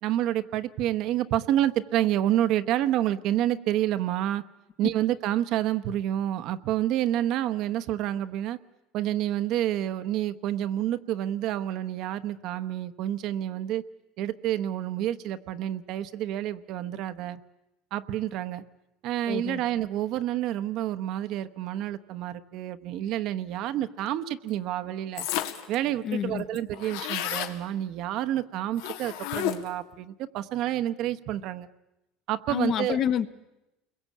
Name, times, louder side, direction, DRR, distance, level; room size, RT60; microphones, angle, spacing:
voice 1, 0.0-4.4 4.8-8.6 8.9-13.8 14.2-17.4 17.9-18.6 19.0-25.3 25.7-31.7 32.3-33.0, right 12 dB, 50° right, 10 dB, 1.0 m, -28 dB
voice 2, 19.3-19.6 26.0-26.4 32.5-33.3, left 9 dB, 35° left, 11 dB, 1.2 m, -28 dB
sound 1, 25.2-25.7 26.1-26.2 26.4-27.6 28.8-29.8, left 12 dB, 75° left, 2.2 m, -31 dB
29.5 x 22.0 x 8.5 m, 0.96 s
cardioid pair, 160°, 0 cm